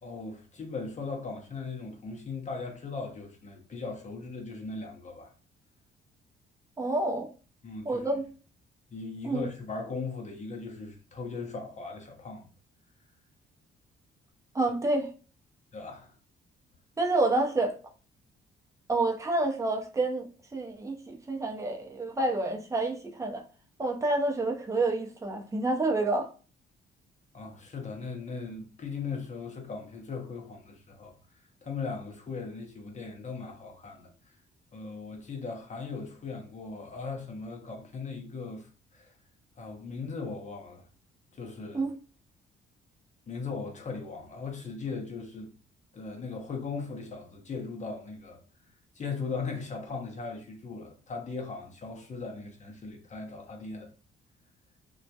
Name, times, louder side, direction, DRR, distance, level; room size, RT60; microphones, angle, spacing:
voice 1, 0.0-5.3 7.6-8.1 8.9-12.5 15.7-16.1 27.3-31.1 31.6-34.3 34.7-39.1 39.6-40.9 41.3-41.8 43.3-45.5 45.9-48.4 48.9-53.9, left 4 dB, 35° left, 0.6 m, -38 dB
voice 2, 6.8-7.3 7.8-8.2 9.2-9.4 14.5-15.1 17.0-17.7 18.9-20.3 20.5-23.4 23.8-26.3 41.7-41.9, right 2 dB, 15° right, 0.5 m, -28 dB
2.2 x 2.1 x 2.7 m
cardioid pair, 90°, 20 cm